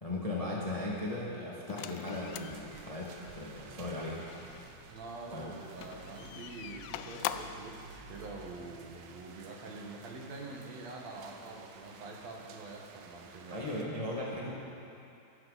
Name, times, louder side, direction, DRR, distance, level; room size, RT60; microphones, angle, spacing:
voice 1, 0.0-4.3 5.3-5.4 13.5-14.5, left 1 dB, 20° left, -5 dB, 1.0 m, -37 dB
sound 1, 1.7-4.8 5.7-7.7, left 11 dB, 85° left, 2.3 m, -43 dB
sound 2, 2.1-13.8, right 5 dB, 85° right, 2.8 m, -54 dB
sound 3, 2.9-9.0, right 1 dB, 65° left, 3.7 m, -55 dB
voice 2, 4.9-13.7, right 3 dB, 55° right, -1 dB, 2.5 m, -45 dB
21.5 x 12.5 x 4.2 m, 2.7 s
omnidirectional pair, 4.1 m